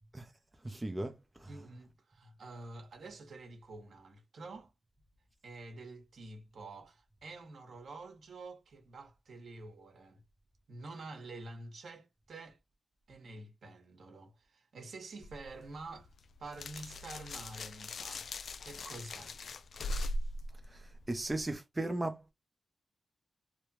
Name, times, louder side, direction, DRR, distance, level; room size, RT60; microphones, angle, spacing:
voice 1, 0.6-1.5 20.7-22.3, right 2 dB, 20° right, 0.6 m, -37 dB
voice 2, 1.5-4.7 5.4-10.2 10.7-12.6 13.1-16.1 16.4-18.3 18.6-19.4, right 2 dB, 70° right, 1.2 m, -48 dB
sound 1, 15.2-21.5, left 1 dB, 65° left, 0.3 m, -41 dB
3.1 x 2.2 x 2.8 m
cardioid pair, 65°, 0 cm